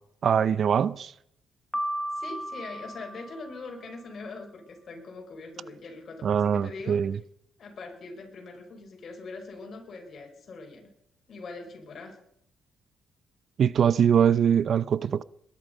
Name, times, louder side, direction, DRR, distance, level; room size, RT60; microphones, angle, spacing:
voice 1, 0.2-1.1 6.2-7.2 13.6-15.2, right 8 dB, 55° right, 0.5 m, -23 dB
Piano, 1.7-3.9, right 1 dB, 5° left, 1.0 m, -35 dB
voice 2, 2.1-7.0 7.6-10.9 11.3-12.2, left 3 dB, 50° left, 5.6 m, -42 dB
21.0 x 11.5 x 5.5 m
cardioid pair, 90°, 0 cm